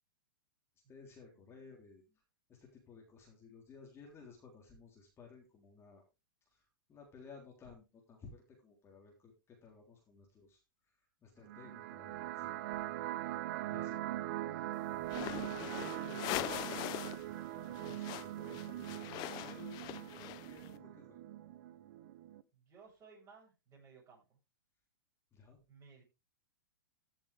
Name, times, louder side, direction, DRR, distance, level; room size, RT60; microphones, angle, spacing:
voice 1, 0.9-2.0 2.5-6.0 6.5-6.6 6.9-10.6 11.2-12.5 13.6-14.0 14.5-21.2 25.3-25.6, left 4 dB, 20° left, 0 dB, 3.5 m, -56 dB
sound 1, 11.4-22.4, right 14 dB, 55° right, 0.9 m, -42 dB
sound 2, 15.0-17.3 17.5-20.7, left 16 dB, 35° left, 0.8 m, -42 dB
voice 2, 22.5-24.4 25.7-26.0, right 5 dB, 25° right, -2 dB, 7.9 m, -60 dB
15.5 x 7.1 x 3.4 m, 0.27 s
hypercardioid pair, 120°, 12 cm